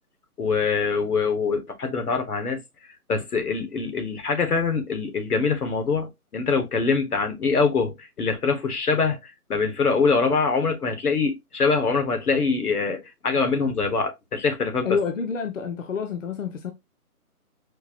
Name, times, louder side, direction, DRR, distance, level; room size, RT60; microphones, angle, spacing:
voice 1, 0.4-2.6 3.1-14.9, left 4 dB, 85° left, 1.3 m, -24 dB
voice 2, 14.8-16.7, left 6 dB, 60° left, 0.6 m, -28 dB
4.5 x 2.4 x 2.8 m
hypercardioid pair, 170°, 45 cm